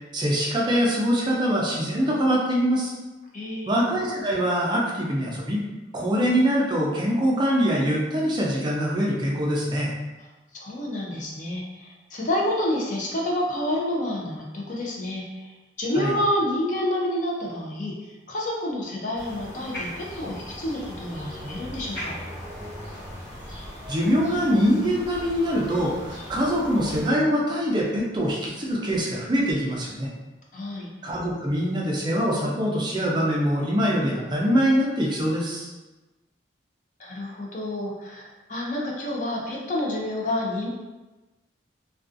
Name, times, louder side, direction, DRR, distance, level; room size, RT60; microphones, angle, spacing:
voice 1, 0.1-2.9 3.7-5.6 5.9-9.9 15.9-16.1 23.9-30.1 31.0-35.7, equal, 25° right, -3 dB, 0.4 m, -23 dB
voice 2, 3.3-3.8 10.5-22.2 30.5-30.9 37.0-38.2 38.5-40.7, left 1 dB, 40° left, -2 dB, 0.5 m, -29 dB
sound 1, 19.1-27.1, equal, 10° left, 1.0 m, -38 dB
2.4 x 2.3 x 2.5 m, 1.1 s
head